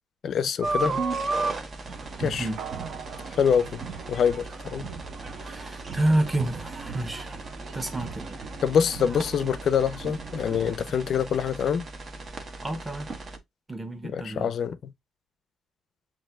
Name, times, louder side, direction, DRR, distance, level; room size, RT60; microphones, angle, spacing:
voice 1, 0.2-0.9 2.2-2.5 3.4-3.8 4.1-4.9 8.6-11.9 14.1-14.9, left 7 dB, 60° left, 0.5 m, -25 dB
sound 1, 0.6-13.4, right 3 dB, 45° right, 1.1 m, -35 dB
sound 2, 1.9-10.7, right 6 dB, 60° right, 1.1 m, -41 dB
voice 2, 2.2-2.6 5.4-7.5 7.7-8.4 12.6-13.1 13.7-14.5, right 1 dB, 15° right, 1.1 m, -29 dB
sound 3, 2.6-5.1 5.5-5.6, right 7 dB, 75° right, 0.6 m, -43 dB
7.3 x 2.9 x 2.3 m
cardioid pair, 85°, 0 cm